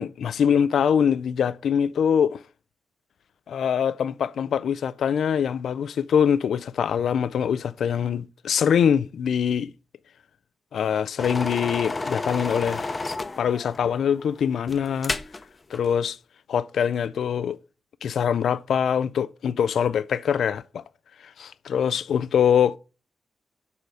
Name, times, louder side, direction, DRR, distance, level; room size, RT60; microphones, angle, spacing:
voice 1, 0.0-2.4 3.5-9.7 10.7-13.0 13.4-15.2 15.7-16.2 16.5-17.6 18.0-20.8 21.2-22.8, left 8 dB, 85° left, 0.3 m, -23 dB
sound 1, 11.2-15.4 15.7-15.9, left 3 dB, 25° left, 0.7 m, -31 dB
6.8 x 4.8 x 6.3 m
wide cardioid pair, 150°, 0 cm